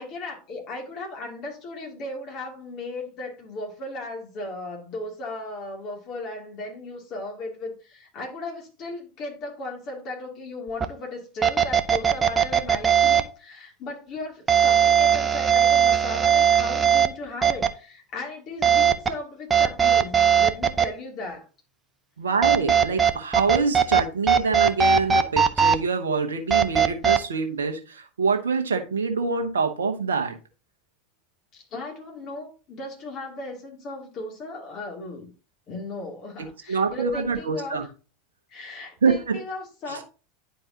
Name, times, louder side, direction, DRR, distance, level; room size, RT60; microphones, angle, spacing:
voice 1, 0.0-21.4 31.5-35.3 35.7-37.9 38.5-40.1, left 2 dB, 45° left, 2.7 m, -36 dB
sound 1, 10.8-10.9 11.4-13.2 14.5-17.1 17.4-17.7 18.6-19.1 19.5-20.9 22.4-24.0 24.3-25.8 26.5-27.2, right 7 dB, 20° right, 0.7 m, -19 dB
voice 2, 22.2-30.4 36.4-37.9 39.0-39.4 39.9-40.0, right 4 dB, 75° right, 1.0 m, -25 dB
10.5 x 4.6 x 2.8 m
figure-of-eight pair, 80°, 0 cm